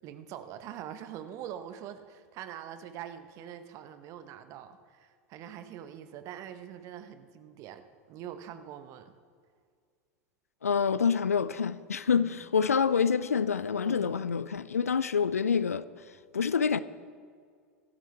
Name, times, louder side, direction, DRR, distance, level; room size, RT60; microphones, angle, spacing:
voice 1, 0.0-9.1 12.2-12.3 13.8-14.2, right 10 dB, 40° right, 1.1 m, -44 dB
voice 2, 10.6-15.8 16.3-16.8, left 6 dB, 80° left, 0.5 m, -27 dB
24.5 x 12.5 x 3.4 m
figure-of-eight pair, 85°, 8 cm